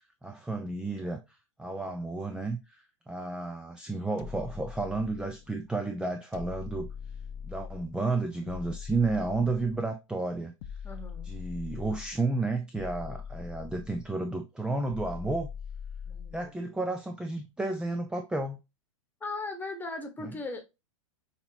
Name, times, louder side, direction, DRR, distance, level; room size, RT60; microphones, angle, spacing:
voice 1, 0.2-6.9 7.4-10.5 11.2-15.5 16.3-18.6 20.2-20.4, right 3 dB, 5° right, 0.4 m, -32 dB
sound 1, 4.2-5.5 6.3-8.0 8.5-9.9 10.6-12.2 12.8-14.2 14.9-16.5, left 7 dB, 45° left, 0.7 m, -42 dB
voice 2, 10.8-11.3 16.1-16.5 19.2-20.6, left 3 dB, 10° left, 1.2 m, -38 dB
6.6 x 2.9 x 2.8 m
figure-of-eight pair, 100°, 17 cm